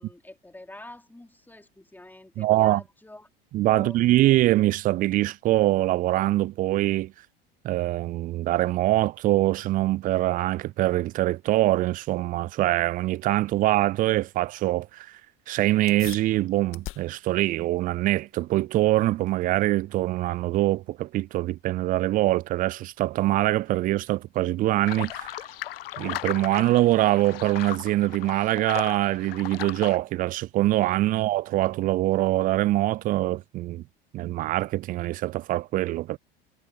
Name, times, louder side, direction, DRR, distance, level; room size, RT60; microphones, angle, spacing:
voice 1, 0.0-3.3 3.7-4.0, left 1 dB, 5° left, 3.2 m, -45 dB
voice 2, 2.4-2.8 3.5-7.1 7.6-15.2 15.5-25.4 26.0-33.8 34.1-36.2, right 16 dB, 30° right, 0.4 m, -24 dB
sound 1, 15.9-25.8, left 15 dB, 45° left, 1.9 m, -49 dB
sound 2, 24.9-30.0, left 14 dB, 75° left, 0.7 m, -36 dB
figure-of-eight pair, 75°, 29 cm